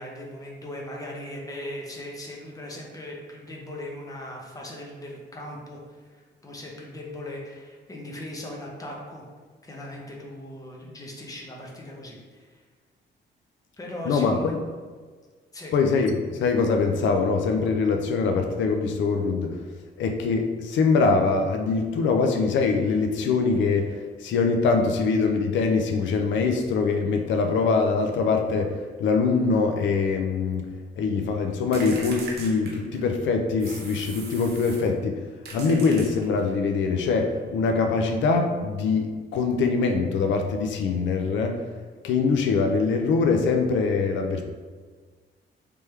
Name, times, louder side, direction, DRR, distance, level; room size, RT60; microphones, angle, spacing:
voice 1, 0.0-9.2 9.6-12.6 13.8-14.5 15.5-15.7, left 1 dB, 20° left, -2 dB, 0.8 m, -39 dB
voice 2, 14.1-14.6 15.7-19.6 20.0-28.7 29.0-30.7 31.0-35.2 35.5-41.6 42.0-44.4, left 4 dB, 90° left, 4 dB, 0.5 m, -23 dB
sound 1, 31.7-33.2 33.6-34.9 35.4-36.6, right 3 dB, 60° right, 0.9 m, -40 dB
3.4 x 3.4 x 4.3 m, 1.5 s
cardioid pair, 160°, 19 cm